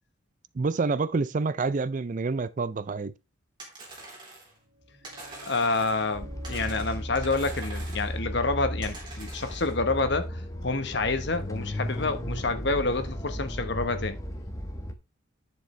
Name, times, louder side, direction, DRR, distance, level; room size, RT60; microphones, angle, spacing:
voice 1, 0.5-3.1, right 4 dB, 40° right, 0.4 m, -27 dB
sound 1, 3.6-4.6 5.0-6.2 6.4-8.2 8.8-9.7, right 2 dB, 25° right, 3.8 m, -44 dB
sound 2, 4.5-10.4, right 1 dB, 55° right, 2.3 m, -52 dB
voice 2, 5.5-14.2, left 3 dB, 55° left, 1.2 m, -28 dB
sound 3, 6.1-14.9, equal, 15° left, 1.0 m, -35 dB
10.5 x 6.5 x 3.3 m
head